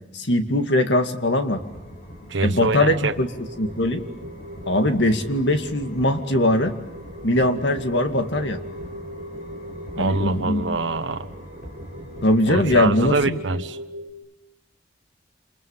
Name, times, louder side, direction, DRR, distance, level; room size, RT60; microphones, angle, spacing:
voice 1, 0.1-1.6 2.4-3.3 3.6-4.1 4.7-6.8 7.2-8.6 10.0-10.6 12.2-13.4, left 1 dB, 70° left, 6 dB, 2.3 m, -21 dB
sound 1, 1.6-13.3, equal, 45° left, 6.1 m, -42 dB
voice 2, 2.3-3.1 10.0-11.3 12.5-13.8, right 3 dB, 90° right, 10 dB, 1.3 m, -24 dB
sound 2, 2.6-14.1, equal, 60° right, 5.0 m, -40 dB
28.5 x 28.0 x 7.4 m, 0.91 s
head